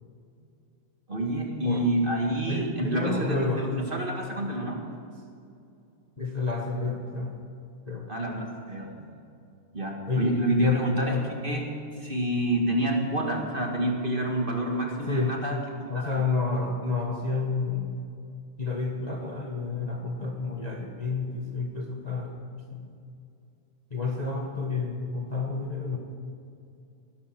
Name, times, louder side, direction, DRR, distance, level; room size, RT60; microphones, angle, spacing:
voice 1, 1.1-4.8 8.1-9.2 9.7-11.7 12.0-16.2, right 1 dB, 20° right, 0 dB, 1.6 m, -28 dB
voice 2, 2.5-3.6 6.2-7.4 7.9-8.1 10.1-11.3 15.1-15.3 15.9-17.9 18.6-22.4 22.7-22.9 23.9-26.0, left 4 dB, 70° left, 0 dB, 0.4 m, -30 dB
20.0 x 12.0 x 6.0 m, 2.6 s
omnidirectional pair, 3.4 m